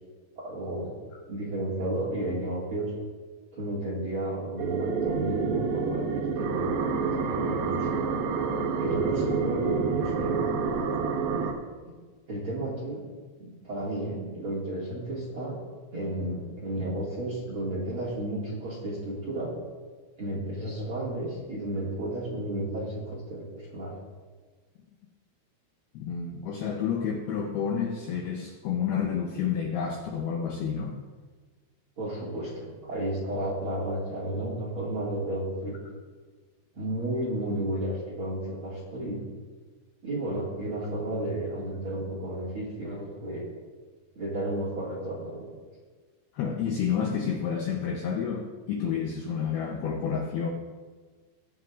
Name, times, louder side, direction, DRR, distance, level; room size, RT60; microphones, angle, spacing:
voice 1, 0.4-1.0 1.3-2.9 3.5-8.0 8.8-10.4 12.3-13.0 13.4-15.6 15.9-19.5 20.2-24.0 32.0-35.8 36.7-39.2 40.0-43.5 44.2-45.4, right 1 dB, 45° right, -5 dB, 1.8 m, -33 dB
sound 1, 4.6-11.5, right 5 dB, 70° right, 2.9 m, -28 dB
voice 2, 25.9-30.9 46.3-50.5, left 7 dB, 80° left, 2 dB, 2.3 m, -30 dB
20.5 x 7.8 x 2.5 m, 1.4 s
omnidirectional pair, 5.4 m